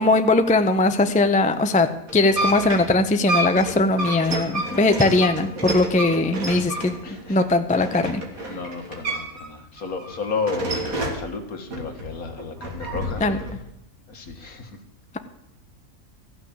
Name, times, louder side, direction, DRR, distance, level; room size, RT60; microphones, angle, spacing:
voice 1, 0.0-7.0 7.3-8.2 13.2-13.4, left 2 dB, 10° left, 8 dB, 0.5 m, -20 dB
sound 1, 2.1-9.5 9.8-11.3 11.7-13.5, right 1 dB, 70° right, 2.8 m, -29 dB
voice 2, 7.0-7.4 7.8-7.9 8.5-13.2 14.1-14.7, left 4 dB, 75° left, 4 dB, 2.1 m, -32 dB
14.5 x 6.3 x 8.8 m, 0.87 s
omnidirectional pair, 1.6 m